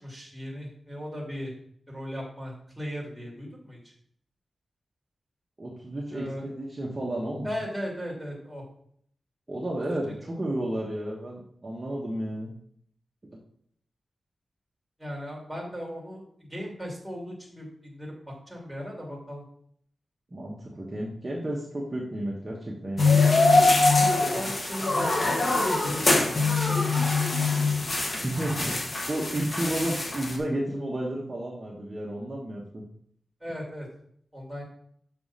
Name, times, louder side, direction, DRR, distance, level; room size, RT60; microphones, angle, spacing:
voice 1, 0.0-1.5 1.9-3.8 6.1-6.4 7.4-8.6 15.0-18.1 18.5-19.4 24.2-26.2 26.6-27.7 33.4-33.9 34.3-34.6, equal, ahead, -3 dB, 2.5 m, -37 dB
voice 2, 5.6-7.5 9.5-12.5 20.3-23.2 28.2-28.8 29.1-32.8, right 1 dB, 25° right, -4 dB, 1.3 m, -32 dB
sound 1, 23.0-30.4, left 3 dB, 45° left, 1.4 m, -23 dB
6.3 x 4.8 x 5.7 m, 0.64 s
wide cardioid pair, 125°, 0 cm